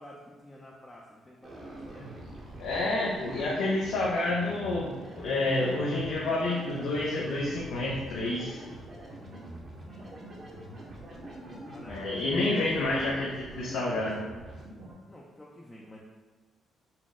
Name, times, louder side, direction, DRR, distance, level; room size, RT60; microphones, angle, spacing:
voice 1, 0.0-2.2 5.6-6.2 9.8-10.1 11.5-13.6 15.0-16.0, left 1 dB, 20° left, -3 dB, 0.5 m, -49 dB
sound 1, 1.4-14.9, right 1 dB, 45° right, 0.8 m, -44 dB
voice 2, 2.6-8.6 11.9-14.2, left 2 dB, 85° left, -4 dB, 0.5 m, -29 dB
4.1 x 2.0 x 3.6 m, 1.3 s
cardioid pair, 90°, 0 cm